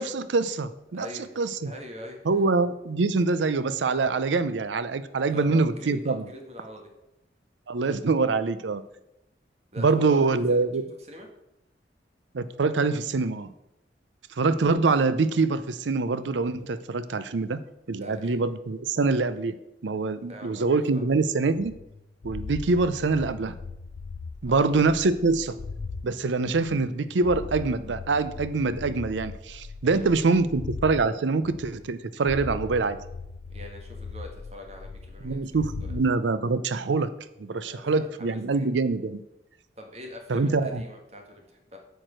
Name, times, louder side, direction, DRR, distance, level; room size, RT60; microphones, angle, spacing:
voice 1, 0.0-1.1 1.4-1.7 2.3-6.2 7.7-8.8 9.8-10.8 12.3-13.5 14.4-17.6 17.9-19.6 19.8-21.7 22.2-23.6 24.4-25.6 26.0-33.0 35.2-37.1 37.4-39.2 40.3-40.8, right 3 dB, 90° right, 13 dB, 0.5 m, -25 dB
voice 2, 0.9-2.2 5.3-6.8 9.7-10.6 11.1-11.3 18.0-18.4 20.3-21.0 24.4-24.7 29.8-30.4 33.5-35.4 35.8-35.9 37.7-38.7 39.8-41.8, left 1 dB, 35° right, 2 dB, 1.8 m, -43 dB
sound 1, 21.6-26.1 26.4-31.1 31.4-32.0 32.2-36.1, left 4 dB, 90° left, 0.5 m, -39 dB
9.0 x 4.7 x 7.5 m, 0.87 s
head